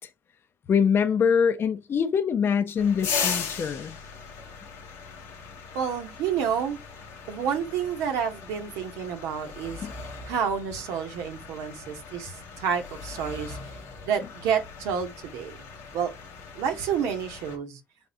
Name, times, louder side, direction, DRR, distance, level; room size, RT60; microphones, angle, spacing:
voice 1, 0.7-3.9 9.8-9.9, left 7 dB, 55° left, 0.6 m, -24 dB
sound 1, 2.8-17.6, left 5 dB, 80° left, 1.0 m, -38 dB
voice 2, 5.7-6.8 7.3-9.9 10.2-13.6 14.0-15.5 15.9-16.1 16.5-17.8, right 7 dB, 85° right, 0.8 m, -29 dB
3.5 x 3.5 x 2.6 m
supercardioid pair, 60°, 5 cm